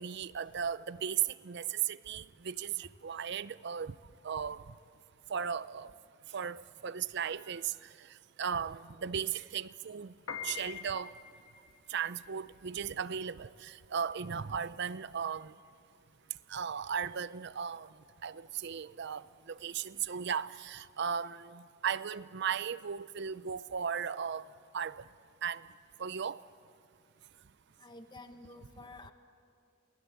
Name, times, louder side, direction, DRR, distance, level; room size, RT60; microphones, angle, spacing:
voice 1, 0.0-3.9 4.2-4.7 5.3-5.9 6.3-8.1 8.4-10.1 10.4-11.1 11.9-15.5 16.5-17.9 18.2-24.5 24.7-25.0 25.4-25.6 26.0-26.4, right 7 dB, 55° right, 0.5 m, -36 dB
Piano, 10.1-20.5, left 7 dB, 85° left, 1.9 m, -48 dB
voice 2, 27.8-29.1, left 2 dB, 20° left, 1.4 m, -50 dB
27.5 x 19.5 x 8.2 m
head